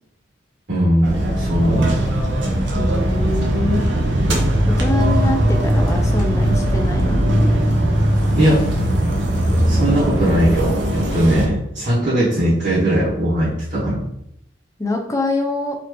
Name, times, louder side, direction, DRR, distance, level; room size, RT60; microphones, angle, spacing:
voice 1, 0.7-2.0 8.4-8.6 9.6-14.0, equal, 60° right, -10 dB, 1.6 m, -19 dB
sound 1, 1.0-11.5, right 1 dB, 80° right, 0.8 m, -19 dB
voice 2, 2.7-3.8 4.7-7.2 14.8-15.8, left 2 dB, 15° left, 2 dB, 0.5 m, -24 dB
4.2 x 2.8 x 3.2 m, 0.77 s
head